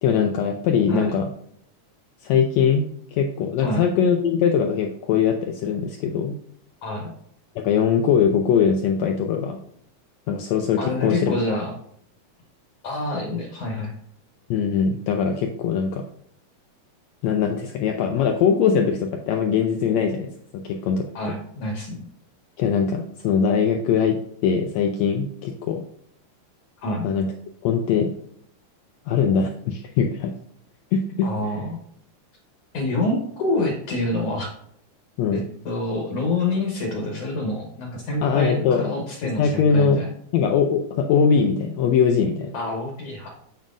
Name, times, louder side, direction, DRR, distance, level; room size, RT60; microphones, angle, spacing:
voice 1, 0.0-1.3 2.2-6.4 7.6-9.6 10.3-11.4 14.5-16.0 17.2-21.1 22.6-25.8 27.0-27.3 27.6-28.1 29.1-30.3 30.9-31.3 35.2-35.4 38.2-38.8 39.4-40.0 40.3-42.5, left 6 dB, 80° left, 4 dB, 1.6 m, -21 dB
voice 2, 10.8-11.7 12.8-13.9 21.2-22.1 26.8-27.1 31.2-31.8 32.7-34.5 35.3-35.4 35.7-40.1 42.5-43.3, left 2 dB, 60° left, 1 dB, 1.9 m, -27 dB
7.3 x 7.2 x 2.5 m, 0.67 s
omnidirectional pair, 3.7 m